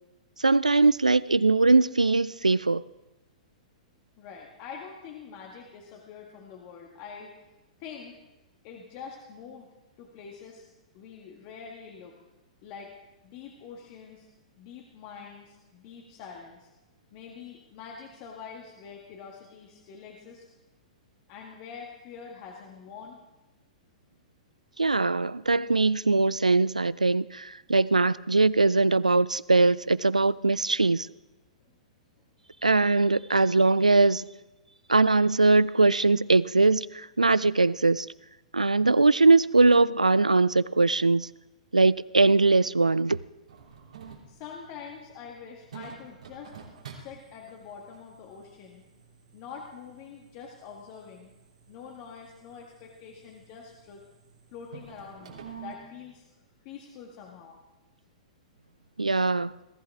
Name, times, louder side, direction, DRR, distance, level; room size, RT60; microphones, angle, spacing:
voice 1, 0.4-2.8 24.8-31.1 32.6-34.2 34.9-38.1 38.5-41.3 41.7-43.2 59.0-59.5, right 3 dB, 90° right, 0.4 m, -21 dB
voice 2, 4.2-7.3 7.8-8.2 8.6-9.7 10.0-10.6 10.9-12.2 12.6-13.0 13.2-14.3 14.6-16.7 17.1-20.5 21.3-23.2 44.3-46.5 46.9-48.8 49.3-51.3 51.7-54.0 54.5-56.3 56.6-57.6, left 6 dB, 40° left, 1.9 m, -45 dB
sound 1, 43.5-55.8, right 7 dB, 70° right, 3.2 m, -50 dB
21.0 x 14.0 x 3.6 m
figure-of-eight pair, 110°, 4 cm